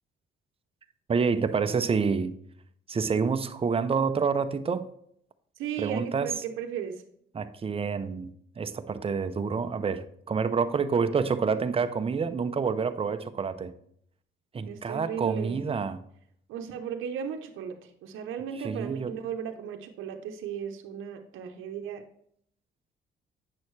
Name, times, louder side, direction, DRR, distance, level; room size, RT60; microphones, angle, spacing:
voice 1, 1.1-2.3 2.9-4.9 5.8-6.3 7.3-8.3 8.6-13.7 14.5-16.0 18.6-19.1, right 5 dB, 30° right, 10 dB, 0.6 m, -28 dB
voice 2, 5.6-7.0 14.6-15.6 16.5-22.1, right 8 dB, 85° right, 5 dB, 0.8 m, -36 dB
8.4 x 6.2 x 3.2 m, 0.67 s
cardioid pair, 90°, 20 cm